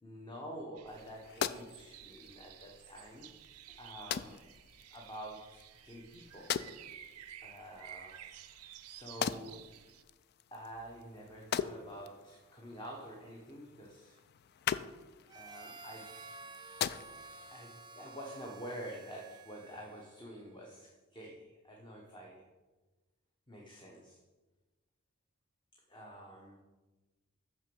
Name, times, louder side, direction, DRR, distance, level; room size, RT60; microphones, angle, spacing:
voice 1, 0.0-3.3 3.8-4.4 4.9-6.7 7.4-8.3 8.8-9.7 10.5-14.2 15.3-16.3 17.5-22.5 23.5-24.2 25.7-26.6, equal, 20° left, -1 dB, 0.9 m, -48 dB
sound 1, 0.8-10.0, right 11 dB, 85° right, 0.6 m, -53 dB
sound 2, 0.9-17.5, left 8 dB, 45° left, 0.3 m, -42 dB
Harmonica, 15.3-20.3, right 4 dB, 20° right, 0.5 m, -52 dB
6.4 x 5.9 x 6.9 m, 1.2 s
head